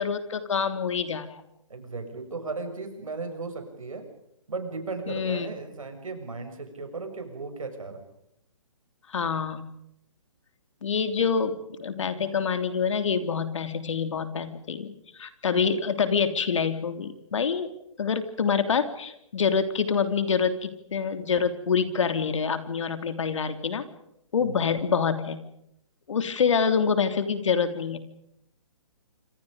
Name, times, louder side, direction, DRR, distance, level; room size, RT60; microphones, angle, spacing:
voice 1, 0.0-1.4 5.1-5.5 9.1-9.7 10.8-17.7 18.0-23.8 24.3-25.4 26.1-28.0, left 6 dB, 65° left, 9 dB, 3.3 m, -26 dB
voice 2, 1.7-4.1 4.5-8.0 24.4-24.5, right 3 dB, 80° right, 6 dB, 7.2 m, -36 dB
27.5 x 25.5 x 5.2 m, 0.79 s
hypercardioid pair, 145°, 17 cm